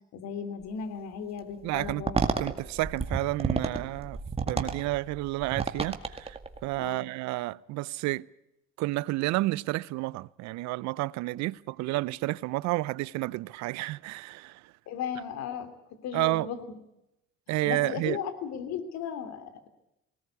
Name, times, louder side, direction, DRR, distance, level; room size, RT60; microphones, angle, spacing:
voice 1, 0.1-2.2 6.8-7.1 14.9-15.7 16.0-16.6 17.6-19.7, left 7 dB, 65° left, 3.2 m, -35 dB
voice 2, 1.6-2.0 2.4-4.2 4.5-6.4 6.6-8.3 8.8-14.7 16.1-16.5 17.5-18.2, right 19 dB, 70° right, 0.7 m, -30 dB
sound 1, 1.7-6.8, right 4 dB, 20° right, 2.1 m, -31 dB
20.0 x 18.0 x 8.4 m
supercardioid pair, 80°, 29 cm